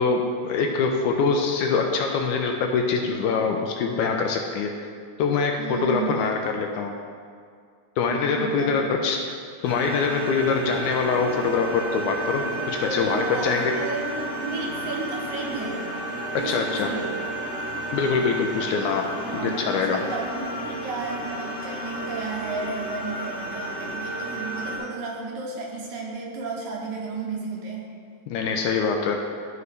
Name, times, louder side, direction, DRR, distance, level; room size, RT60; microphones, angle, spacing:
voice 1, 0.0-4.7 5.2-6.9 8.0-13.7 16.4-16.9 17.9-19.1 19.4-20.0 28.3-29.2, left 5 dB, 80° left, 3 dB, 1.9 m, -24 dB
voice 2, 5.6-6.4 8.1-8.9 12.9-15.9 16.4-17.1 19.3-27.9, right 3 dB, 75° right, -1 dB, 2.2 m, -33 dB
sound 1, 9.6-24.8, right 1 dB, 30° left, 1.3 m, -32 dB
12.0 x 4.8 x 3.3 m, 2.1 s
omnidirectional pair, 3.7 m